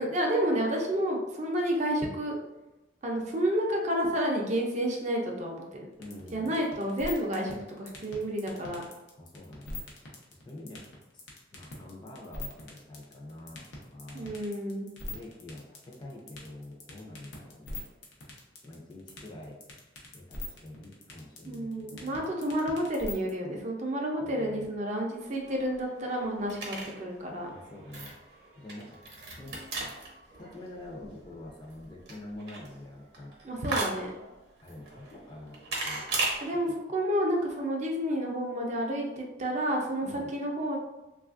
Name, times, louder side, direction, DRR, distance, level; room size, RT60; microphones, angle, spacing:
voice 1, 0.0-2.4 3.0-5.8 6.3-8.8 14.1-14.9 21.5-27.5 33.4-34.1 36.4-40.8, equal, 40° right, 0 dB, 0.4 m, -30 dB
sound 1, 6.0-23.3, left 2 dB, 90° left, 0.7 m, -41 dB
voice 2, 6.0-6.6 9.2-9.8 10.3-10.9 11.1-11.2 11.5-14.3 15.1-17.9 18.6-19.6 20.1-22.2 24.2-24.7 27.5-28.2 28.5-29.0 29.4-29.6 30.4-33.3 34.6-36.1 36.6-36.8 40.0-40.3, left 1 dB, 25° left, -2 dB, 0.5 m, -46 dB
sound 2, 25.1-36.4, right 3 dB, 60° right, 0.8 m, -38 dB
3.1 x 2.3 x 2.4 m, 1.0 s
head